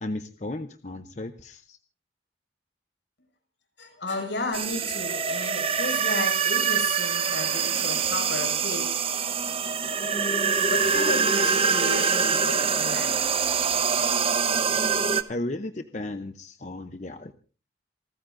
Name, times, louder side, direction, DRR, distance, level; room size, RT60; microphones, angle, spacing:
voice 1, 0.0-1.8 15.3-17.3, left 2 dB, 40° left, 8 dB, 0.7 m, -34 dB
voice 2, 3.8-9.2 10.0-13.2, left 2 dB, 75° left, 3 dB, 6.2 m, -34 dB
sound 1, 4.5-15.2, right 6 dB, 30° right, 0.9 m, -24 dB
28.0 x 14.0 x 2.6 m, 0.37 s
head